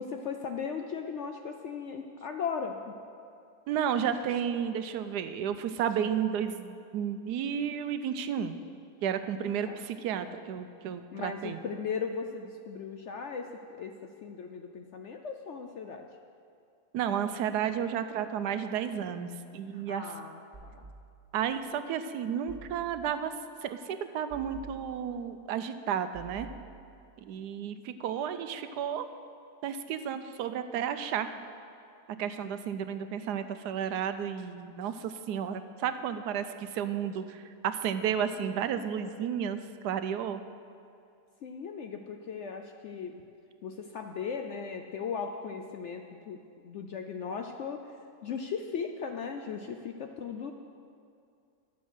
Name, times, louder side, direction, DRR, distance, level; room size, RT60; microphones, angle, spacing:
voice 1, 0.0-2.9 9.7-9.8 11.1-13.5 13.7-13.9 14.2-16.1 19.7-20.9 41.4-43.2 43.6-47.8 48.2-50.5, left 6 dB, 65° left, 4 dB, 0.7 m, -37 dB
voice 2, 3.7-8.6 9.0-11.6 16.9-20.1 21.3-23.3 23.6-26.5 27.2-29.1 29.6-31.3 32.2-39.6 39.8-40.4, right 8 dB, 80° right, 10 dB, 1.2 m, -32 dB
sound 1, 20.5-21.6 22.5-23.4 24.3-25.4 26.1-27.2, right 4 dB, 25° right, 1.9 m, -50 dB
12.0 x 7.2 x 6.2 m, 2.4 s
omnidirectional pair, 1.7 m